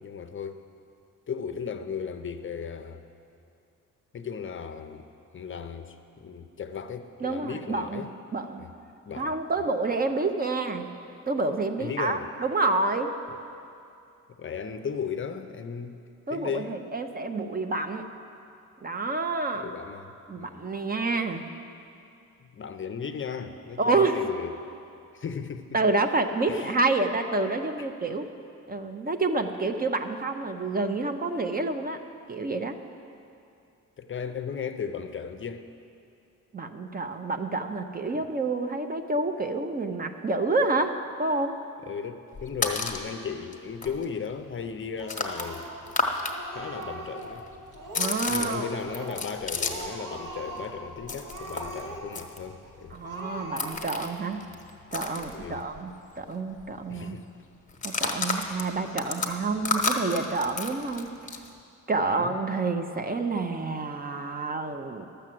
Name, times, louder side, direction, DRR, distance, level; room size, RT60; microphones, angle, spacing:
voice 1, 0.0-0.6 1.3-3.0 4.1-5.1 5.3-8.1 8.6-8.7 9.1-9.7 11.8-12.3 14.4-16.0 16.3-16.8 19.5-20.7 22.4-24.7 25.1-25.8 26.5-26.8 27.8-27.9 34.0-35.6 38.1-38.2 41.8-45.7 46.5-47.4 48.3-53.0 55.3-55.7 56.9-57.2 62.0-62.4, left 6 dB, 40° left, 8 dB, 0.5 m, -36 dB
voice 2, 7.2-8.0 8.3-8.7 9.2-10.9 11.3-13.1 16.3-18.0 18.8-19.7 20.3-21.4 23.8-24.2 25.7-28.2 28.7-32.0 32.3-32.7 36.5-41.6 48.0-48.7 52.9-54.4 54.9-57.2 57.8-61.1 61.9-65.1, right 3 dB, 30° right, 6 dB, 0.5 m, -28 dB
sound 1, 42.3-43.1 43.5-43.6 43.8-46.3 46.6-50.0 50.3-55.9 56.2-56.3 56.6-56.9 57.7-61.5, left 3 dB, 20° left, 1.0 m, -32 dB
Speech, 45.0-45.9 46.2-47.4 47.7-48.2 48.5-49.3 49.6-50.8 51.2-52.3 52.6-52.7 53.0-54.1, right 2 dB, 70° right, 2.1 m, -40 dB
12.0 x 6.7 x 7.6 m, 2.6 s
wide cardioid pair, 130°, 33 cm